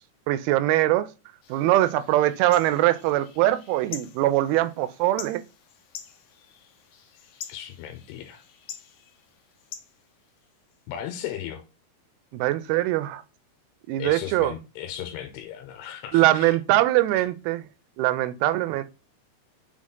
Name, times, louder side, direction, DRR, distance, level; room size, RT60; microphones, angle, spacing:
voice 1, 0.3-1.1 1.5-5.4 12.3-13.2 13.9-14.5 16.1-17.6 18.0-18.8, right 15 dB, 85° right, 2.3 m, -22 dB
sound 1, 1.4-10.8, left 9 dB, 70° left, 2.1 m, -46 dB
voice 2, 7.5-8.4 10.9-11.6 14.0-16.6, left 10 dB, 85° left, 2.8 m, -36 dB
6.3 x 4.1 x 3.7 m
omnidirectional pair, 4.7 m